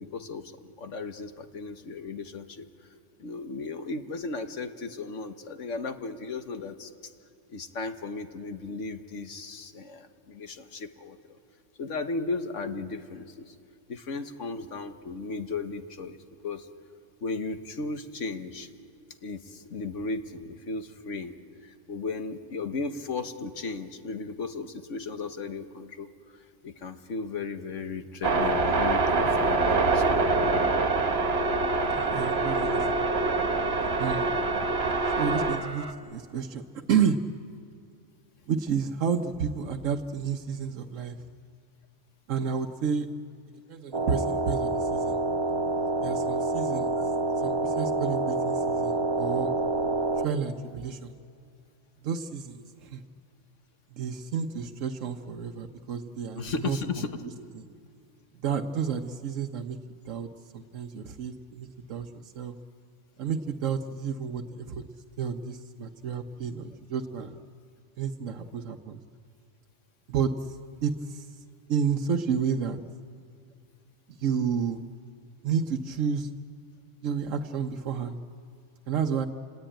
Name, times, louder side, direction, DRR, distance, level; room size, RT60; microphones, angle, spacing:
voice 1, 0.0-2.7 3.2-6.9 7.5-11.4 11.8-13.5 13.9-16.2 16.4-16.7 17.2-18.7 19.2-21.4 21.6-26.1 26.6-30.2 56.4-57.1, left 3 dB, 75° left, 7 dB, 1.6 m, -35 dB
sound 1, 28.2-35.9, right 3 dB, 55° right, 1.7 m, -25 dB
voice 2, 31.9-33.1 34.0-34.3 35.1-37.2 38.5-41.2 42.3-43.1 43.5-45.2 46.0-47.0 47.4-49.5 50.2-51.1 52.0-53.0 53.9-57.6 58.4-59.8 60.0-62.6 63.2-64.8 65.2-67.4 68.0-69.0 70.1-71.3 71.7-72.8 74.2-74.8 75.4-76.3 77.0-78.2 78.9-79.3, right 6 dB, 90° right, 5 dB, 1.2 m, -31 dB
sound 2, 43.9-50.3, right 2 dB, 25° right, 0.9 m, -27 dB
28.5 x 20.0 x 9.0 m, 2.4 s
omnidirectional pair, 1.3 m